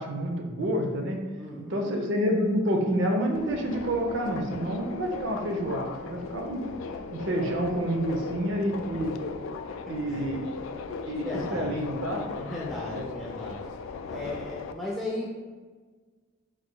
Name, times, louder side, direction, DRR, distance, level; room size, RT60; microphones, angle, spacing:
voice 1, 0.0-1.2 1.7-6.6 7.1-9.1 9.9-10.5 11.1-11.2 11.5-12.2 12.9-13.1 14.1-14.2, equal, 65° right, 2 dB, 0.6 m, -28 dB
voice 2, 1.4-1.9 6.3-6.4 10.1-10.3 11.1-12.1 12.3-15.3, left 1 dB, ahead, -5 dB, 0.4 m, -37 dB
Subway metro underground, 3.3-14.7, left 4 dB, 80° left, 0.3 m, -38 dB
4.7 x 4.4 x 2.2 m, 1.5 s
head